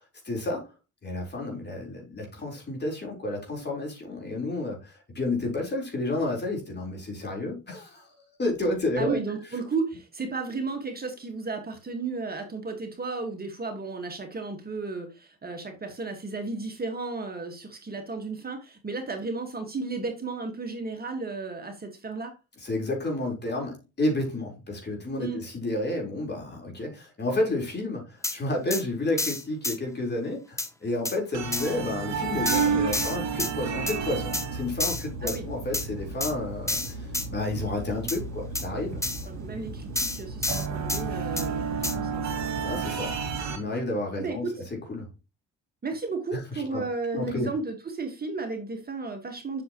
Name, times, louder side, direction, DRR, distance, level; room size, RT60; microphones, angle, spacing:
voice 1, 0.2-0.6 1.0-8.1 8.4-9.2 22.6-39.0 42.6-43.2 43.5-44.5 44.9-45.1 46.3-46.4 46.7-46.8 47.1-47.5, left 2 dB, 35° left, 4.1 m, -31 dB
voice 2, 9.0-22.3 25.2-25.4 35.2-35.5 39.2-42.3 44.2-44.6 45.8-49.6, right 3 dB, 30° right, 1.6 m, -34 dB
sound 1, 28.2-28.4 28.7-28.8 29.2-29.8 30.6-30.7 31.0-31.2 31.5-31.7 32.4-33.5 33.9-34.0 34.3-34.5 34.8-35.4 35.7-35.9 36.2-36.3 36.7-37.3 38.1-38.2 38.5-38.7 39.0-39.2 39.9-41.0 41.4-41.5 41.8-42.0, left 2 dB, 10° left, 0.8 m, -29 dB
sound 2, 31.3-43.6, right 5 dB, 65° right, 2.6 m, -32 dB
7.7 x 6.5 x 3.0 m
cardioid pair, 90°, 30 cm